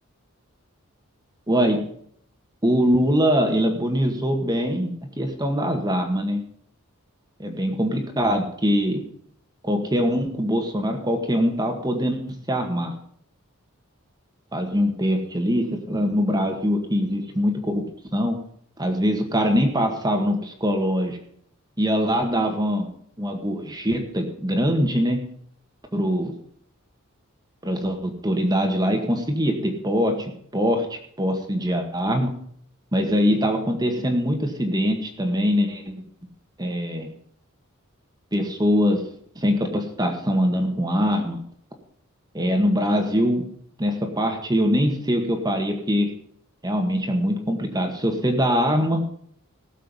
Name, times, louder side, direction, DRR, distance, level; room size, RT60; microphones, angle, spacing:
voice 1, 1.5-1.8 2.6-4.9 5.2-6.4 7.4-9.0 9.6-12.9 14.5-17.8 18.1-18.4 18.8-21.2 21.8-22.9 23.2-25.2 25.9-26.3 27.6-32.3 32.9-35.9 36.6-37.1 38.3-39.0 39.4-41.4 42.3-43.5 43.8-46.1 46.6-49.1, equal, 20° right, 4 dB, 1.9 m, -23 dB
17.5 x 7.3 x 5.6 m, 0.63 s
head